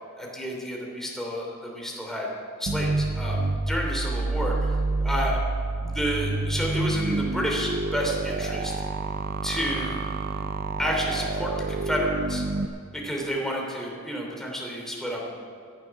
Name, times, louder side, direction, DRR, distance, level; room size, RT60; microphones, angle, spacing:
voice 1, 0.1-2.3 2.6-5.4 5.8-8.7 9.4-10.0 10.8-12.4 12.9-15.3, equal, ahead, -2 dB, 3.1 m, -30 dB
sound 1, 2.7-12.7, right 3 dB, 45° right, 0.5 m, -28 dB
15.0 x 11.5 x 5.9 m, 2.4 s
head